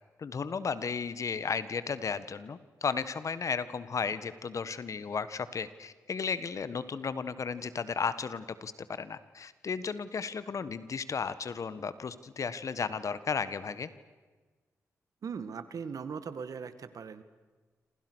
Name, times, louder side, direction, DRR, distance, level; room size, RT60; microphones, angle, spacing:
voice 1, 0.2-13.9, left 5 dB, 60° left, 14 dB, 1.5 m, -34 dB
voice 2, 15.2-17.2, right 6 dB, 70° right, 12 dB, 2.0 m, -39 dB
27.5 x 27.0 x 6.4 m, 1.4 s
cardioid pair, 60°, 6 cm